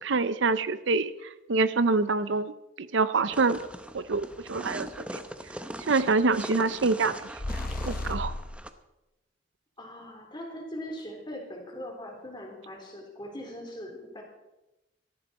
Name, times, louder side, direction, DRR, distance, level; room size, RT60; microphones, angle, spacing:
voice 1, 0.0-2.5 2.8-3.6 3.9-5.2 5.9-7.1 7.8-8.3, right 3 dB, 70° right, 14 dB, 0.6 m, -26 dB
sound 1, 3.3-8.7, right 1 dB, 5° right, 0.8 m, -40 dB
sound 2, 7.4-8.6, left 2 dB, 45° left, 1.1 m, -33 dB
voice 2, 9.8-14.2, equal, 25° left, 1 dB, 3.4 m, -40 dB
18.0 x 13.5 x 4.2 m, 0.99 s
head